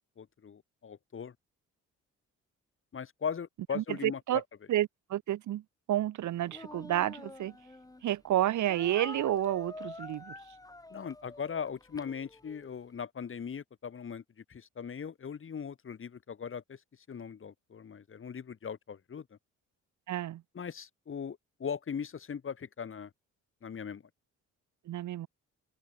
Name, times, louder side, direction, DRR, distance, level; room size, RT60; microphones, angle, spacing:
voice 1, 0.2-1.3 2.9-4.4 10.9-16.8 17.1-19.3 20.5-23.1 23.6-24.0, left 7 dB, 45° left, 3.1 m, -39 dB
voice 2, 3.8-4.4 4.7-5.6 5.9-7.5 8.0-10.3 20.1-20.4 24.9-25.3, right 13 dB, 75° right, 1.8 m, -30 dB
Speech, 6.5-8.0 8.7-12.7, left 2 dB, 10° left, 2.0 m, -46 dB
open air
cardioid pair, 90°, 30 cm